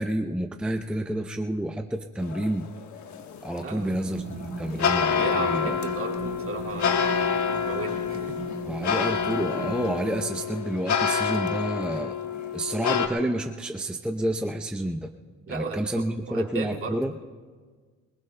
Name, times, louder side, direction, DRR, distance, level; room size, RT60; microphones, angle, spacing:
voice 1, 0.0-2.7 3.4-5.8 8.6-12.2 12.5-15.1 15.5-17.1, right 1 dB, 5° right, 5 dB, 0.6 m, -29 dB
sound 1, 2.2-13.1, left 7 dB, 75° left, 1.3 m, -28 dB
voice 2, 3.6-4.0 4.8-7.1 7.7-8.4 15.5-17.0, right 4 dB, 45° right, 0 dB, 2.3 m, -35 dB
sound 2, 3.9-10.3, right 5 dB, 75° right, 1.4 m, -38 dB
26.5 x 19.5 x 2.2 m, 1.5 s
cardioid pair, 90°, 30 cm